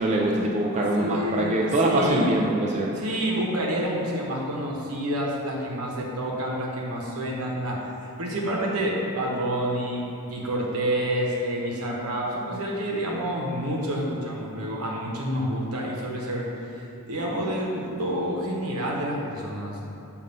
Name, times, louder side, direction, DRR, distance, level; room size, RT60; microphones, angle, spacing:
voice 1, 0.0-2.9, right 1 dB, 30° right, -3 dB, 0.4 m, -23 dB
voice 2, 1.0-2.4 2.9-7.8 8.2-16.5 16.7-19.8, equal, 80° right, -2 dB, 1.0 m, -28 dB
6.9 x 2.6 x 5.2 m, 2.8 s
head